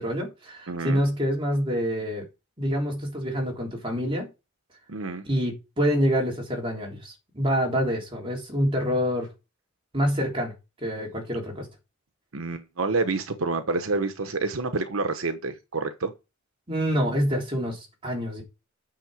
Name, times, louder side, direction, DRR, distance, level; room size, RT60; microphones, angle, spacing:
voice 1, 0.0-2.2 2.6-4.3 5.3-9.3 9.9-10.5 10.8-11.7 16.7-18.4, equal, 25° right, 3.6 m, -26 dB
voice 2, 0.7-1.0 4.9-5.3 12.3-16.1, right 3 dB, 85° right, 1.0 m, -28 dB
9.0 x 6.6 x 4.9 m
head